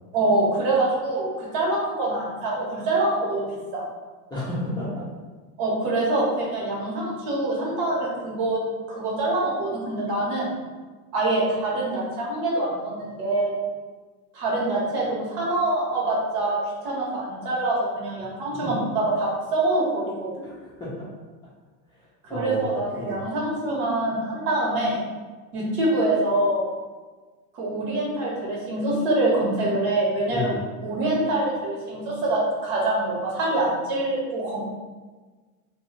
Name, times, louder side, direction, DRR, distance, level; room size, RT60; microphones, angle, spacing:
voice 1, 0.1-3.5 3.7-3.8 5.6-8.6 8.9-10.6 11.1-13.6 14.3-16.6 16.8-20.3 22.2-25.0 25.5-26.7 27.5-34.6, right 2 dB, 70° right, -4 dB, 1.3 m, -25 dB
voice 2, 4.3-5.0 18.6-18.7 20.4-21.1 22.3-22.6 23.0-23.2 30.3-30.6, left 1 dB, 10° left, -11 dB, 0.4 m, -31 dB
2.6 x 2.4 x 2.9 m, 1.3 s
supercardioid pair, 125°, 49 cm